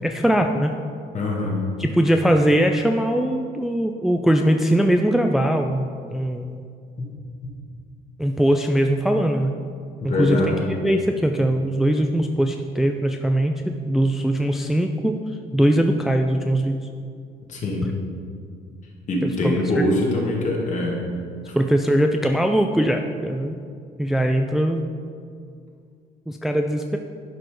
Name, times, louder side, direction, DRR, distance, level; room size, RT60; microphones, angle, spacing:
voice 1, 0.0-0.7 1.8-6.6 8.2-9.5 10.0-10.6 10.8-15.2 15.5-16.8 19.2-19.8 21.5-23.6 24.0-24.8 26.3-27.0, right 1 dB, ahead, 4 dB, 0.3 m, -21 dB
voice 2, 1.1-1.6 10.0-10.7 17.5-17.9 19.1-21.0, left 1 dB, 45° left, -1 dB, 1.9 m, -23 dB
11.0 x 4.2 x 4.9 m, 2.3 s
cardioid pair, 110°, 17 cm